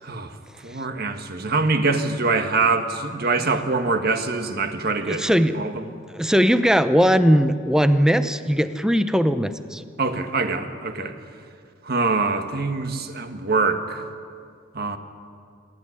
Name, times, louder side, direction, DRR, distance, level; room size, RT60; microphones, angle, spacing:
voice 1, 0.0-0.4 0.6-5.3 5.5-5.8 10.0-11.2 11.8-14.0 14.7-15.0, right 3 dB, 50° right, 7 dB, 1.5 m, -24 dB
voice 2, 5.1-5.6 6.1-9.8, equal, 5° right, 11 dB, 0.7 m, -19 dB
28.5 x 11.5 x 9.7 m, 2.3 s
head